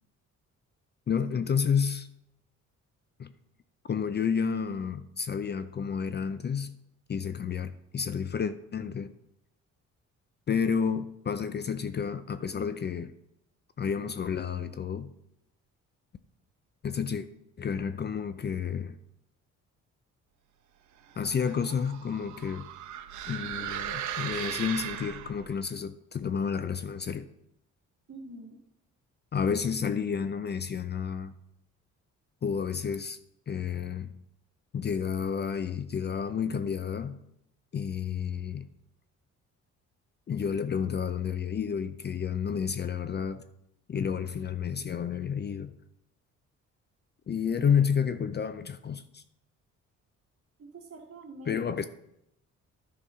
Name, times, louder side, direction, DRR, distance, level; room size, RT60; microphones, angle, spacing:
voice 1, 1.1-2.1 3.2-3.3 3.9-6.7 7.1-9.1 10.5-13.1 13.8-15.1 16.8-17.3 17.6-19.0 21.2-22.7 23.3-27.3 29.3-31.4 32.4-33.2 33.5-34.1 34.7-37.2 37.7-38.7 40.3-43.4 43.9-45.7 47.3-49.2 51.5-51.8, left 7 dB, 35° left, 0.5 m, -30 dB
sound 1, 21.1-25.6, right 10 dB, 70° right, 0.8 m, -37 dB
voice 2, 28.1-28.6 50.6-51.6, right 2 dB, 50° right, 2.3 m, -45 dB
10.5 x 4.0 x 5.6 m
cardioid pair, 90°, 30 cm